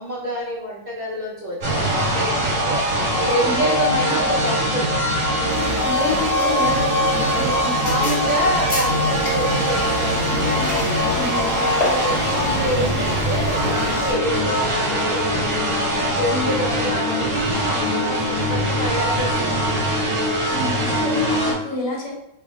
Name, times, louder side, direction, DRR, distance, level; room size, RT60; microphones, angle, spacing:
voice 1, 0.0-2.8 3.3-4.9 7.4-10.6 11.6-15.8 16.2-20.1, equal, 85° right, -7 dB, 0.4 m, -28 dB
sound 1, 1.6-21.5, equal, 35° right, 1.2 m, -22 dB
sound 2, 5.5-14.1, left 1 dB, 25° left, 0.8 m, -32 dB
voice 2, 5.6-8.2 11.1-11.7 16.3-16.5 20.5-22.1, left 2 dB, 55° left, -3 dB, 1.1 m, -28 dB
3.1 x 2.1 x 4.1 m, 0.86 s
omnidirectional pair, 1.8 m